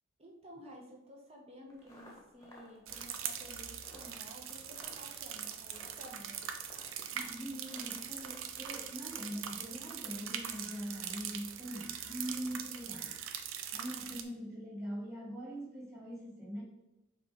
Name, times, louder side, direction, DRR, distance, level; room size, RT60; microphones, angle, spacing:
voice 1, 0.2-6.4, equal, 30° right, 0 dB, 1.2 m, -53 dB
sound 1, 1.7-8.9, left 1 dB, 15° left, 1.2 m, -57 dB
sound 2, 2.9-14.2, right 8 dB, 80° right, 0.6 m, -42 dB
voice 2, 7.1-13.2 13.7-16.6, equal, 15° right, -5 dB, 2.0 m, -42 dB
6.9 x 4.2 x 3.6 m, 0.98 s
head